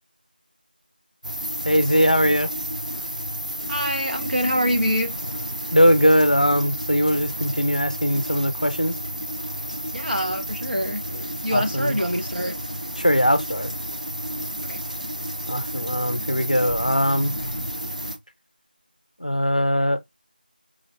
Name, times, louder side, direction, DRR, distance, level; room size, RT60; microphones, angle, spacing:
sound 1, 1.2-18.2, equal, 50° right, 0.5 m, -31 dB
voice 1, 1.7-2.5 5.7-9.0 11.5-12.0 13.0-13.7 15.5-17.3 19.2-20.0, equal, 50° left, 0.5 m, -20 dB
voice 2, 3.7-5.1 9.9-11.0 11.4-12.5 14.7-14.8, equal, 70° right, 1.3 m, -25 dB
5.0 x 2.6 x 2.5 m
figure-of-eight pair, 180°, 5 cm